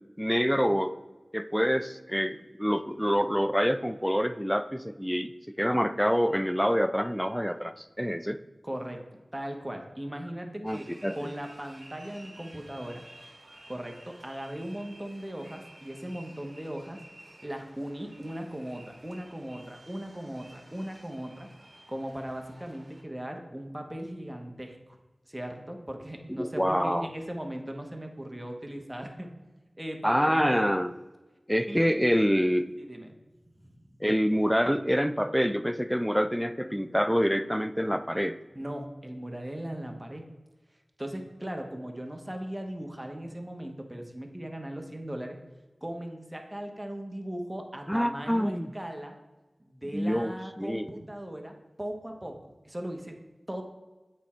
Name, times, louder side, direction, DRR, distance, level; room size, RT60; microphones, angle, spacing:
voice 1, 0.2-0.9 1.3-8.4 10.6-11.3 26.3-27.1 30.0-30.9 31.5-32.7 34.0-38.4 47.9-48.7 49.9-50.9, equal, ahead, 11 dB, 0.4 m, -26 dB
voice 2, 8.6-9.0 9.3-13.0 13.7-17.0 17.4-21.5 21.9-25.0 25.3-29.3 29.8-30.7 31.7-31.8 32.8-33.1 33.4-34.1 38.5-40.2 41.0-45.4 45.8-49.2 49.6-52.4 52.6-53.2 53.5-53.6, right 1 dB, 15° right, 3 dB, 1.1 m, -38 dB
sound 1, 10.7-23.0, right 1 dB, 50° right, 1.3 m, -53 dB
8.1 x 4.4 x 4.3 m, 1.2 s
wide cardioid pair, 45°, 0 cm